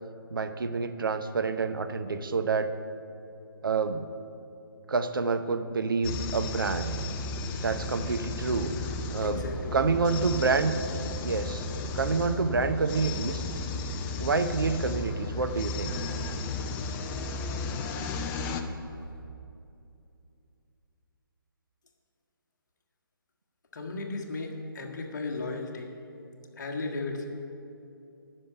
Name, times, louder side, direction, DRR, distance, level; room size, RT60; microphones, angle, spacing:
voice 1, 0.3-2.7 3.6-4.1 4.9-6.9 7.6-8.7 9.1-9.4 9.7-10.8 11.2-11.6 11.9-13.4 14.2-15.9, right 4 dB, 65° right, 9 dB, 0.7 m, -28 dB
sound 1, 6.0-18.6, left 3 dB, 15° left, 0.4 m, -34 dB
sound 2, 7.4-19.2, equal, 90° right, 2.6 m, -49 dB
voice 2, 9.2-9.8 23.7-25.9 26.6-27.3, left 3 dB, 50° left, 2 dB, 1.4 m, -35 dB
10.0 x 6.5 x 8.9 m, 2.7 s
figure-of-eight pair, 140°, 12 cm